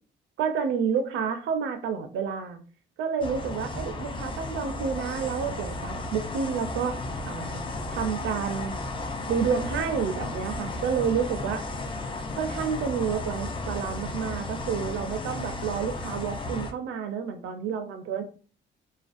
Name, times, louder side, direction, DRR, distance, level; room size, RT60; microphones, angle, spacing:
voice 1, 0.4-2.6 3.0-7.0 7.3-8.8 9.3-11.7 12.4-18.2, right 6 dB, 75° right, 7 dB, 0.4 m, -29 dB
sound 1, 3.2-16.7, left 2 dB, 25° left, 0.4 m, -34 dB
2.4 x 2.1 x 2.4 m, 0.40 s
cardioid pair, 90°, 20 cm